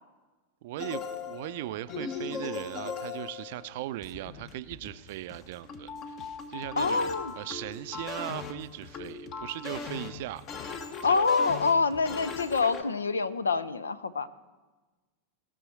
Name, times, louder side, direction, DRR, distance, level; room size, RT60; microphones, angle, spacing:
voice 1, 0.6-6.2 6.5-7.1 7.4-10.4 11.0-11.3, right 14 dB, 50° right, 14 dB, 0.5 m, -38 dB
sound 1, 0.8-12.8, left 5 dB, 35° left, 1.0 m, -39 dB
voice 2, 6.8-7.3 11.0-14.3, left 4 dB, 75° left, 15 dB, 0.5 m, -26 dB
17.5 x 6.2 x 6.0 m, 1.2 s
figure-of-eight pair, 90°, 0 cm